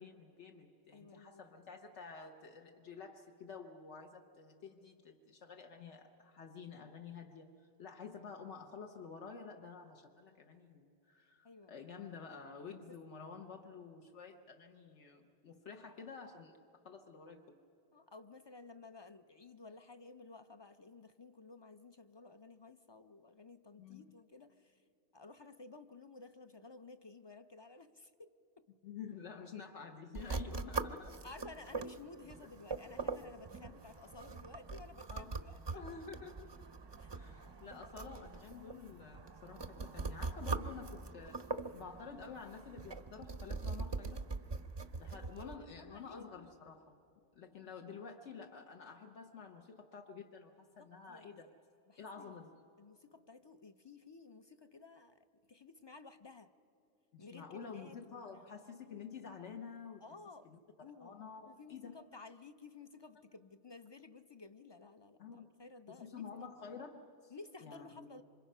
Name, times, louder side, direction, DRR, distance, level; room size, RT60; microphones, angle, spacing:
voice 1, 0.0-16.6 16.8-17.5 23.8-24.0 28.8-31.3 33.6-33.7 35.1-35.4 35.7-36.5 37.1-44.2 45.0-47.0 47.4-51.5 52.0-52.6 57.1-60.0 60.4-60.6 61.0-62.0 65.2-65.5 65.9-67.3 67.6-68.1, left 5 dB, 75° left, 4 dB, 1.2 m, -50 dB
voice 2, 0.9-1.4 11.4-11.9 12.9-13.0 17.9-24.8 25.1-28.3 30.3-30.4 31.2-35.8 37.0-37.1 37.4-37.9 39.8-40.4 45.1-46.5 50.8-51.4 51.9-52.3 52.8-56.5 57.2-58.4 60.0-60.5 60.8-66.5 67.3-68.2, left 3 dB, 40° left, 10 dB, 0.4 m, -55 dB
sound 1, 30.1-45.5, right 3 dB, 35° right, 0.4 m, -43 dB
27.0 x 25.0 x 5.5 m, 2.8 s
omnidirectional pair, 1.2 m